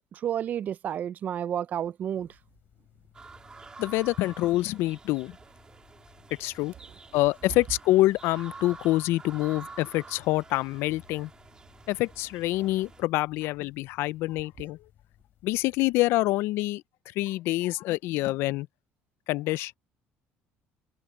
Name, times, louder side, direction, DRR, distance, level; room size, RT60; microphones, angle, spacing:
voice 1, 0.1-2.3, right 9 dB, 40° right, 0.4 m, -31 dB
sound 1, 2.2-16.0, left 12 dB, 55° left, 4.5 m, -61 dB
sound 2, 3.1-13.0, right 4 dB, 20° right, 3.3 m, -48 dB
voice 2, 3.8-5.4 6.4-6.7 7.1-11.3 11.9-14.8 15.4-16.8 17.2-18.7 19.3-19.7, left 18 dB, 75° left, 0.4 m, -26 dB
cardioid pair, 145°, 4 cm